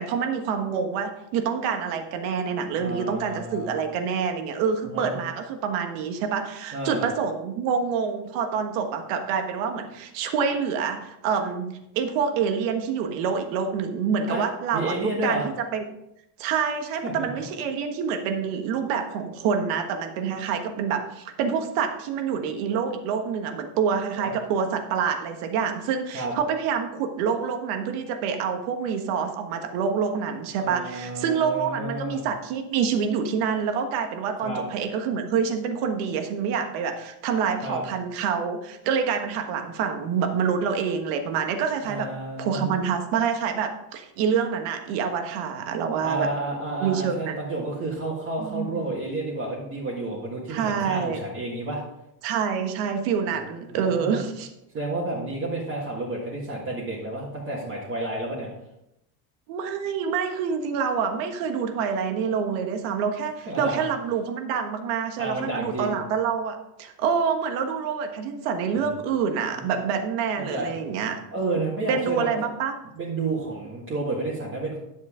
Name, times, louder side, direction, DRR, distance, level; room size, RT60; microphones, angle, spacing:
voice 1, 0.0-14.9 15.2-15.8 16.4-42.1 42.4-46.3 46.8-47.4 48.4-49.0 50.5-51.2 52.2-54.5 59.5-71.2 71.9-72.7, right 6 dB, 75° right, 6 dB, 1.5 m, -27 dB
voice 2, 2.8-3.9 4.9-5.2 6.7-7.1 14.3-14.4 14.7-15.4 17.0-17.5 24.2-24.3 26.1-26.3 30.6-32.2 34.4-34.6 37.6-37.8 41.8-42.9 46.0-51.8 53.3-53.4 53.7-54.3 54.7-58.5 63.5-63.8 65.2-66.0 68.8-68.9 70.4-70.7 71.3-72.3 73.0-74.8, right 2 dB, 25° right, -6 dB, 1.8 m, -31 dB
10.5 x 7.3 x 3.7 m, 0.84 s
cardioid pair, 170°, 45 cm